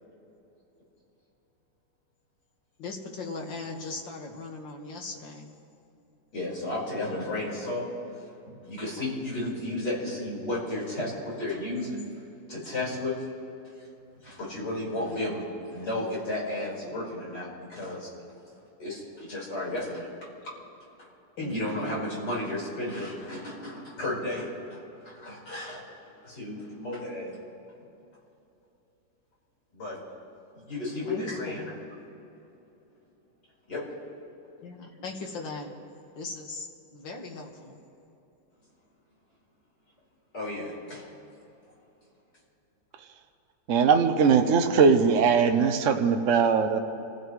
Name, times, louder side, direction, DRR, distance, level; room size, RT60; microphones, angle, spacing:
voice 1, 2.8-5.5 21.4-22.0 31.1-31.8 34.6-35.7 36.2-36.7 36.9-37.8, left 3 dB, 80° left, 1 dB, 2.3 m, -38 dB
voice 2, 6.3-7.9 8.5-12.1 12.5-13.2 14.2-15.5 15.7-18.1 18.8-20.1 21.0-21.1 21.4-25.8 26.2-27.4 29.7-30.0 30.6-31.7 33.7-33.8 40.3-41.1, left 1 dB, 65° left, -5 dB, 5.4 m, -33 dB
voice 3, 43.7-46.8, right 6 dB, 55° right, 5 dB, 1.0 m, -21 dB
27.5 x 15.5 x 3.2 m, 2.9 s
omnidirectional pair, 2.0 m